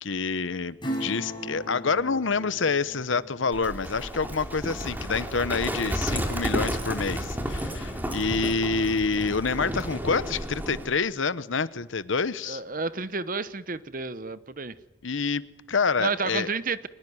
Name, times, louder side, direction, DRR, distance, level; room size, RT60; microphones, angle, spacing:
voice 1, 0.0-12.6 15.0-16.5, left 4 dB, 70° left, 16 dB, 1.0 m, -27 dB
Acoustic guitar / Strum, 0.8-7.0 7.4-7.5, right 1 dB, 25° left, 5.8 m, -40 dB
Livestock farm animals working animals, 3.5-10.9, equal, 10° right, 3.1 m, -32 dB
voice 2, 12.5-14.7 16.0-16.9, right 4 dB, 40° right, 15 dB, 1.0 m, -31 dB
23.5 x 21.0 x 9.6 m, 0.97 s
head